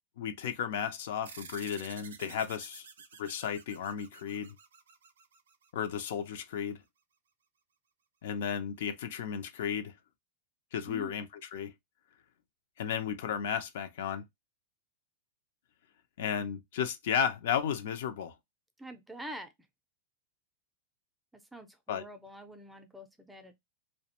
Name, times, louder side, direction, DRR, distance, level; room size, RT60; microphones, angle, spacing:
voice 1, 0.2-2.9 3.2-4.6 5.7-6.8 8.2-9.9 10.7-11.7 12.8-14.2 16.2-18.3 21.9-22.0, left 8 dB, 70° left, 0.4 m, -34 dB
sound 1, 1.2-6.1, right 6 dB, 90° right, 0.4 m, -51 dB
voice 2, 10.9-11.2 18.8-19.5 21.3-23.5, right 1 dB, 5° right, 0.4 m, -46 dB
2.3 x 2.1 x 2.8 m
hypercardioid pair, 120°, 0 cm